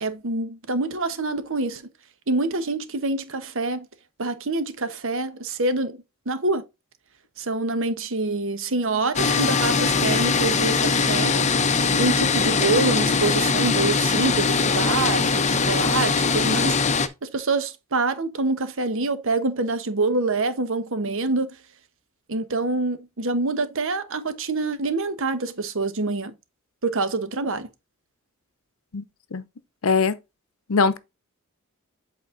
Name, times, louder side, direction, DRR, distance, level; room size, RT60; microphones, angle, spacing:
voice 1, 0.0-1.9 2.3-3.8 4.2-6.6 7.4-11.5 11.9-16.8 17.2-21.6 22.3-26.3 26.8-27.7, right 3 dB, 65° right, 1.1 m, -26 dB
sound 1, 9.1-17.1, left 4 dB, 30° left, 0.7 m, -21 dB
voice 2, 29.8-30.2 30.7-31.0, left 5 dB, 70° left, 0.7 m, -21 dB
8.2 x 4.2 x 3.9 m
head